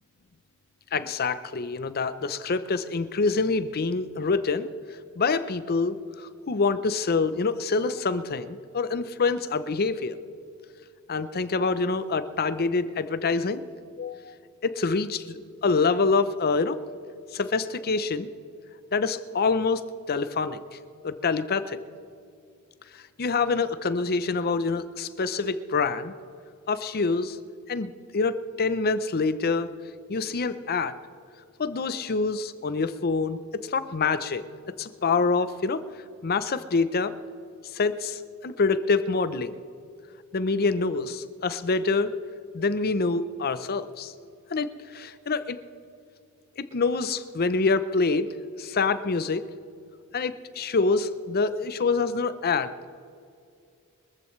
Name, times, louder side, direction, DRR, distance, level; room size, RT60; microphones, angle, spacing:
voice 1, 0.9-4.7 5.2-10.2 11.1-13.6 14.0-14.4 14.6-16.8 17.3-18.3 18.9-19.8 20.1-20.6 21.0-21.8 23.2-26.1 26.7-27.4 27.7-29.7 30.1-31.0 31.6-34.4 34.8-35.8 36.2-37.1 37.7-39.5 40.3-42.1 42.5-44.1 44.5-45.6 46.6-48.3 48.6-49.4 50.1-52.7, left 4 dB, 45° left, 13 dB, 0.6 m, -26 dB
23.0 x 14.5 x 3.2 m, 2.4 s
head